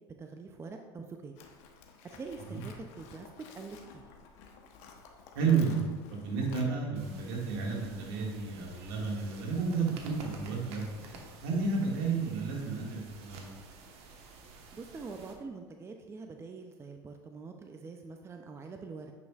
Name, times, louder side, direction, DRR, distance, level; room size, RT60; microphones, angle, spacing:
voice 1, 0.2-1.3 2.1-4.1 14.7-19.1, right 4 dB, 20° right, 4 dB, 0.5 m, -44 dB
Livestock farm animals working animals, 1.4-6.7, left 5 dB, 60° left, 1.0 m, -53 dB
voice 2, 5.4-5.8 6.1-13.4, right 5 dB, 70° right, -2 dB, 1.9 m, -32 dB
sound 1, 6.9-15.3, right 3 dB, 50° right, 1.2 m, -51 dB
9.2 x 5.4 x 2.4 m, 1.5 s
hypercardioid pair, 80°, 13 cm